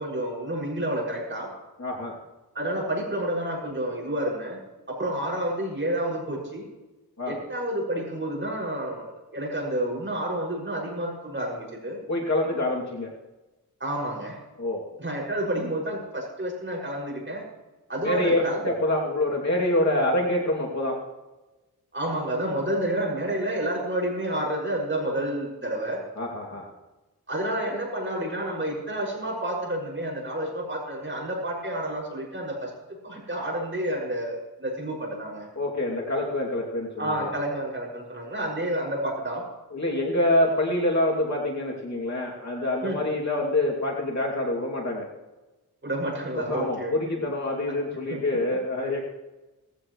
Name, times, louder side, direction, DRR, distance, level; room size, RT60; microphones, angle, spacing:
voice 1, 0.0-1.5 2.5-4.6 4.9-6.7 7.3-9.1 9.3-12.0 13.8-14.4 15.0-17.4 17.9-18.6 21.9-26.0 27.3-32.7 33.0-35.5 37.0-39.4 42.8-43.0 45.8-46.9 48.1-48.4, right 1 dB, 30° right, -4 dB, 6.4 m, -29 dB
voice 2, 1.8-2.2 7.2-7.4 12.1-13.1 14.6-14.8 18.0-21.0 26.2-26.7 35.6-37.3 38.4-38.5 39.7-45.1 46.4-49.0, left 1 dB, 45° left, -3 dB, 2.9 m, -26 dB
18.5 x 15.5 x 3.2 m, 1.1 s
wide cardioid pair, 95°, 38 cm